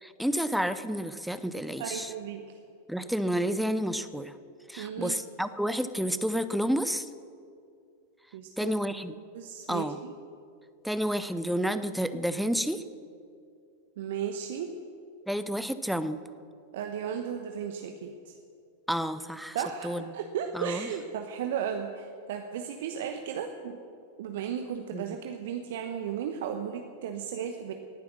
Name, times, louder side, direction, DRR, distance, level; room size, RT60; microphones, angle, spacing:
voice 1, 0.0-2.1 2.9-4.3 4.7-7.1 8.6-9.1 9.7-10.0 10.8-12.8 15.3-16.2 18.9-19.6 19.8-20.0 20.5-20.9 24.9-25.2, equal, ahead, 12 dB, 0.7 m, -30 dB
voice 2, 1.8-2.4 4.8-5.2 8.3-8.7 9.3-10.1 14.0-14.7 16.7-18.3 19.5-23.8 24.2-27.7, right 8 dB, 55° right, 5 dB, 0.9 m, -35 dB
18.5 x 9.6 x 6.3 m, 2.4 s
figure-of-eight pair, 90°, 0 cm